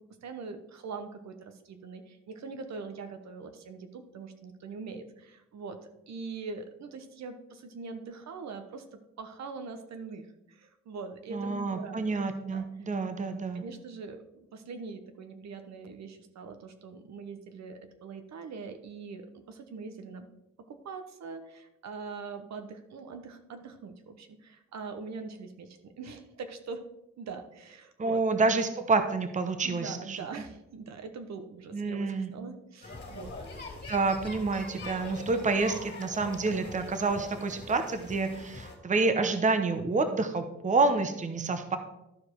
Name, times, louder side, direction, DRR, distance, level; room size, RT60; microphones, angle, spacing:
voice 1, 0.0-5.8 6.1-12.2 12.5-12.9 13.5-20.3 20.7-26.8 27.2-28.2 29.6-33.3, right 4 dB, 60° right, 8 dB, 1.0 m, -43 dB
voice 2, 11.3-13.6 28.0-30.4 31.7-32.3 33.9-41.8, right 3 dB, 25° right, 8 dB, 0.9 m, -28 dB
sound 1, 32.8-38.8, left 2 dB, 35° left, 2.5 m, -43 dB
12.0 x 4.8 x 4.6 m, 0.89 s
cardioid pair, 90°, 30 cm